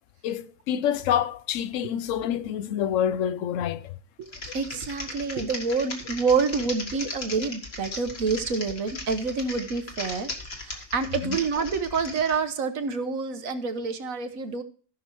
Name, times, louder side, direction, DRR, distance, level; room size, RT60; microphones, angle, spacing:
voice 1, 0.2-4.0 11.2-11.4, left 9 dB, 65° left, 0.8 m, -27 dB
Typing, 4.2-12.4, left 2 dB, 40° left, 1.9 m, -37 dB
voice 2, 4.5-10.3 10.6-14.6, right 5 dB, 60° right, 1.3 m, -27 dB
14.0 x 6.2 x 4.6 m
omnidirectional pair, 1.8 m